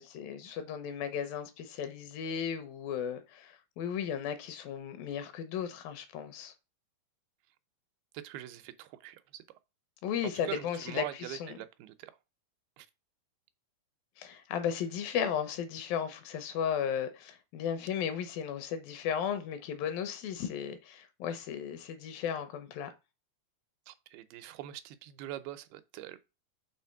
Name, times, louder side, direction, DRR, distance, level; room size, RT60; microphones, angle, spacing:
voice 1, 0.0-6.5 10.0-11.6 14.2-22.9, left 8 dB, 75° left, 2.5 m, -35 dB
voice 2, 8.2-9.4 10.3-12.1 12.8-12.9 23.9-26.2, right 14 dB, 90° right, 2.6 m, -43 dB
6.3 x 3.4 x 5.7 m
omnidirectional pair, 4.3 m